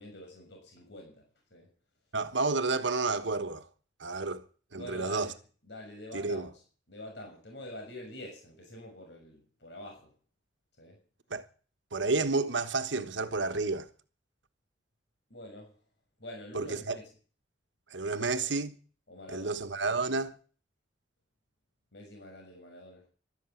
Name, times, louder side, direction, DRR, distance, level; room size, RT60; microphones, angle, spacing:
voice 1, 0.0-1.7 4.7-5.3 5.6-6.6 6.9-10.1 10.8-11.0 15.3-15.8 16.2-17.1 18.1-18.5 19.1-19.6 21.9-23.1, left 1 dB, 70° left, 6.7 m, -46 dB
voice 2, 2.1-3.7 4.0-4.4 4.7-5.3 6.1-6.5 11.3-11.4 11.9-13.9 16.5-17.0 17.9-18.7 19.3-20.4, right 3 dB, 85° right, 1.3 m, -30 dB
16.0 x 12.5 x 7.2 m
head